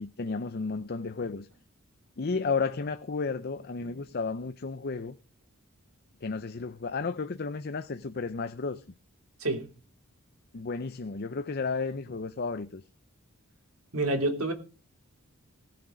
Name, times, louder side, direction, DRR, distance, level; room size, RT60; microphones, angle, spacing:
voice 1, 0.0-1.5 2.2-5.2 6.2-8.8 10.5-12.8, left 4 dB, 45° left, 0.6 m, -33 dB
voice 2, 13.9-14.5, right 2 dB, 75° right, 3.0 m, -28 dB
18.5 x 7.7 x 5.1 m
head